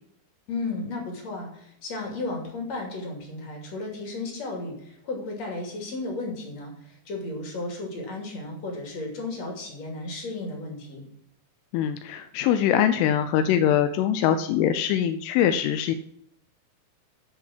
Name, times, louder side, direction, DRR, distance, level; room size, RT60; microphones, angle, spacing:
voice 1, 0.5-11.0, left 2 dB, 40° left, 1 dB, 3.3 m, -34 dB
voice 2, 11.7-16.0, left 10 dB, 90° left, 9 dB, 3.1 m, -23 dB
10.0 x 7.2 x 7.4 m, 0.71 s
omnidirectional pair, 5.5 m